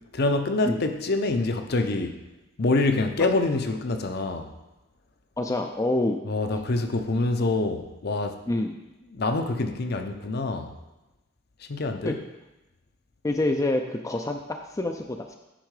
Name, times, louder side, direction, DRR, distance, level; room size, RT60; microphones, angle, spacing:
voice 1, 0.1-2.2 2.6-4.5 6.3-8.4 9.1-10.7 11.7-12.2, left 2 dB, 55° left, 7 dB, 0.6 m, -26 dB
voice 2, 5.4-6.2 8.5-8.8 12.0-12.1 13.2-15.4, left 2 dB, 15° left, 4 dB, 0.4 m, -27 dB
10.0 x 3.7 x 4.8 m, 1.0 s
head